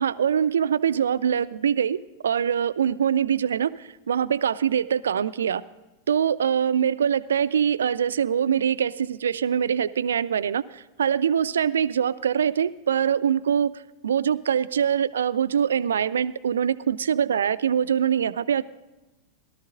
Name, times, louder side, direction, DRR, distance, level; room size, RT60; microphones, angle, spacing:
voice 1, 0.0-5.6 6.1-13.7 14.0-18.6, right 8 dB, 65° right, 16 dB, 0.4 m, -23 dB
17.5 x 12.5 x 3.8 m, 1.1 s
figure-of-eight pair, 90°, 0 cm